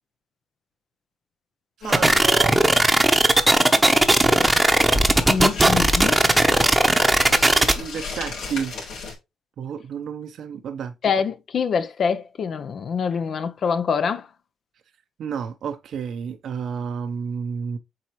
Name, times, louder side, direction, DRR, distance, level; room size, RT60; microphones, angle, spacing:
sound 1, 1.8-9.1, left 4 dB, 90° left, 3.8 m, -35 dB
voice 1, 1.8-2.6 5.3-6.1 6.9-8.7 9.6-10.9 15.2-17.8, right 7 dB, 65° right, 0.8 m, -32 dB
sound 2, 1.9-7.7, right 2 dB, 10° right, 0.9 m, -17 dB
voice 2, 5.3-6.2 11.0-14.3, left 6 dB, 55° left, 0.6 m, -25 dB
7.6 x 4.2 x 3.1 m
cardioid pair, 90°, 0 cm